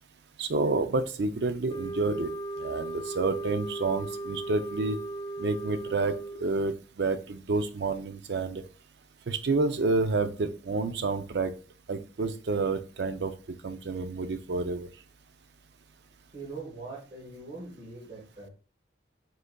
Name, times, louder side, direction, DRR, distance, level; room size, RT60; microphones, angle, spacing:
voice 1, 0.4-2.3 2.6-5.0 5.4-8.6 9.3-11.5 11.9-13.3 13.6-14.9, right 3 dB, 65° right, 10 dB, 0.4 m, -29 dB
sound 1, 1.7-6.6, right 2 dB, 25° left, 0.4 m, -37 dB
voice 2, 16.3-18.5, right 3 dB, 35° right, -5 dB, 1.3 m, -42 dB
5.1 x 3.8 x 2.2 m, 0.37 s
head